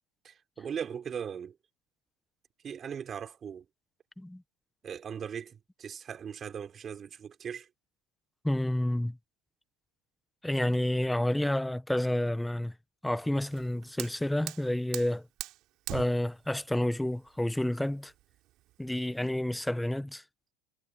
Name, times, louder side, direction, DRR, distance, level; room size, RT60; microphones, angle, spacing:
voice 1, 0.2-1.5 2.6-3.6 4.8-7.7, right 7 dB, 25° right, 4.4 m, -39 dB
voice 2, 8.4-9.2 10.4-12.7 13.0-15.2 15.9-18.1 18.8-20.2, left 1 dB, 5° left, 0.9 m, -29 dB
Fire, 13.4-19.3, right 16 dB, 45° right, 3.0 m, -44 dB
supercardioid pair, 145°, 0 cm